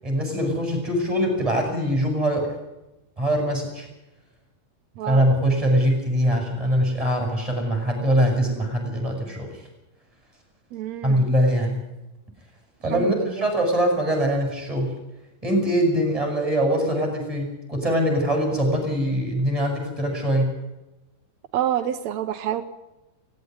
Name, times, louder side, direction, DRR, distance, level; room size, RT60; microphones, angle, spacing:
voice 1, 0.0-2.5 3.2-3.9 5.1-9.6 11.0-11.8 12.8-14.9 15.4-20.5, equal, 10° right, 2 dB, 7.7 m, -22 dB
voice 2, 5.0-5.3 10.7-11.3 12.9-13.5 21.5-22.6, right 11 dB, 80° right, 8 dB, 1.5 m, -28 dB
18.0 x 17.0 x 9.6 m, 0.99 s
omnidirectional pair, 4.4 m